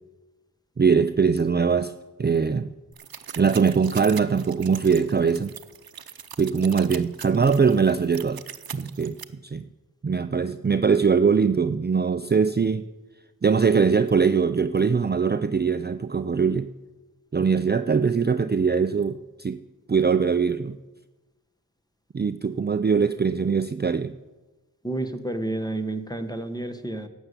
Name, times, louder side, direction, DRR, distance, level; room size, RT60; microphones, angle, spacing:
voice 1, 0.8-1.9 2.2-2.7 3.4-5.5 6.4-8.4 8.7-9.2 9.4-9.6 10.0-12.8 13.4-16.7 17.3-19.6 19.9-20.8 22.1-24.1, right 5 dB, 30° right, 11 dB, 0.5 m, -22 dB
sound 1, 2.9-9.2, right 8 dB, 75° right, 0.7 m, -41 dB
voice 2, 24.8-27.1, right 2 dB, 10° left, 8 dB, 1.3 m, -30 dB
12.0 x 8.1 x 8.3 m, 1.1 s
wide cardioid pair, 50°, 36 cm